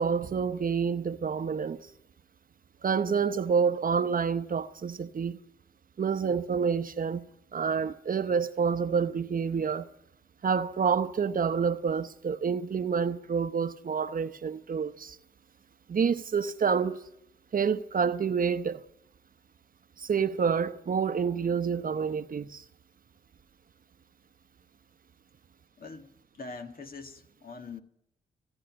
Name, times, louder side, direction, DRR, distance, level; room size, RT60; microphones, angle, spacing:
voice 1, 0.0-1.9 2.8-5.4 6.0-7.2 7.5-9.9 10.4-15.2 15.9-17.0 17.5-18.8 20.0-22.6, right 6 dB, 50° right, 0.9 m, -28 dB
voice 2, 25.8-27.8, left 4 dB, 50° left, 2.0 m, -43 dB
30.0 x 10.0 x 9.0 m
supercardioid pair, 45°, 19 cm